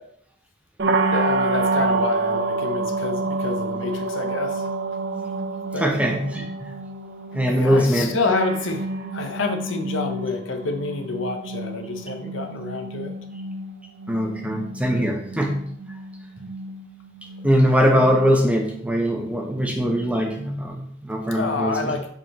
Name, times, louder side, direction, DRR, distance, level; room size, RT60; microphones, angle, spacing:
sound 1, 0.8-20.6, right 3 dB, 60° right, 0.6 m, -29 dB
voice 1, 1.1-4.7 5.7-5.9 7.5-13.1 21.3-22.1, left 3 dB, 80° left, 5 dB, 0.8 m, -28 dB
voice 2, 5.8-6.7 7.3-8.1 14.1-15.7 17.4-22.0, equal, 5° right, 1 dB, 0.8 m, -21 dB
6.3 x 5.1 x 2.9 m, 0.65 s
head